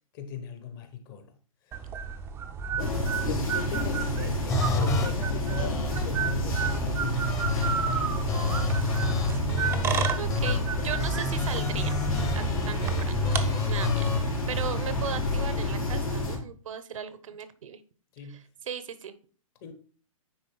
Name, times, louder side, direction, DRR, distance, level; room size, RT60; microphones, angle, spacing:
voice 1, 0.1-1.4 1.7-1.8 2.7-7.4 18.1-18.5 19.6-19.7, left 6 dB, 40° left, 1.3 m, -39 dB
sound 1, 1.7-13.4, right 7 dB, 15° right, 0.6 m, -33 dB
sound 2, 2.8-16.4, left 1 dB, 80° left, 3.3 m, -29 dB
sound 3, 4.5-5.1 5.6-6.0 6.5-8.0 8.3-10.6 11.0-14.2, left 4 dB, 15° left, 0.9 m, -29 dB
voice 2, 10.2-12.0 12.3-13.2 13.7-14.1 14.5-17.8 18.3-19.1, right 8 dB, 70° right, 0.9 m, -37 dB
9.6 x 3.8 x 3.9 m
hypercardioid pair, 130°, 18 cm